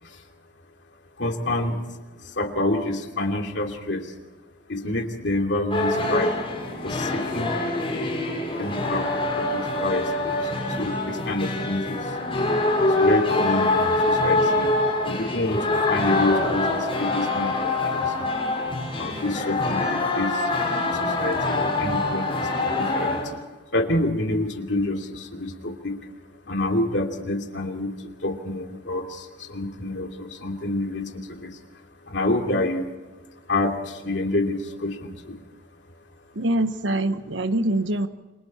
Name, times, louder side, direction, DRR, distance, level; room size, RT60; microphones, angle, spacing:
voice 1, 1.2-1.9 2.2-4.2 4.7-6.3 6.8-7.5 8.5-12.2 13.0-14.7 15.0-18.3 19.0-23.4 23.7-26.1 26.5-31.6 32.1-32.9 33.5-35.4, left 2 dB, 70° left, 3 dB, 2.7 m, -28 dB
sound 1, 5.7-23.2, left 2 dB, 30° left, 6.7 m, -24 dB
voice 2, 36.4-38.1, right 1 dB, 85° right, 10 dB, 1.1 m, -24 dB
29.0 x 23.5 x 4.4 m, 1.2 s
head